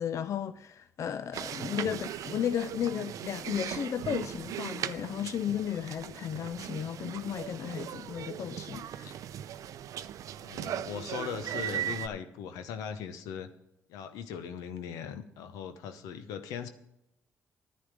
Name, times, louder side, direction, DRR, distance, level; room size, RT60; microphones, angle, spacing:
voice 1, 0.0-9.2, left 9 dB, 60° left, 0.4 m, -34 dB
sound 1, 1.3-12.1, right 11 dB, 70° right, 0.5 m, -38 dB
voice 2, 10.4-13.5 13.9-16.7, left 7 dB, 90° left, 0.8 m, -39 dB
9.9 x 9.5 x 5.0 m
supercardioid pair, 60°, 6 cm